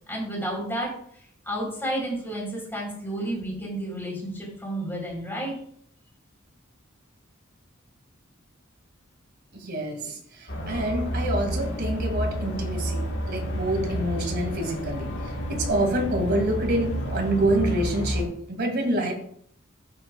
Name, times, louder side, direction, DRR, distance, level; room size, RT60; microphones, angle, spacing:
voice 1, 0.1-0.9 1.5-5.5, right 1 dB, 10° left, -3 dB, 3.9 m, -31 dB
voice 2, 9.6-10.1 10.7-15.1 15.5-19.1, right 1 dB, 50° right, 2 dB, 2.1 m, -26 dB
sound 1, 10.5-18.2, equal, 65° left, 1.6 m, -30 dB
12.0 x 6.8 x 2.3 m, 0.65 s
head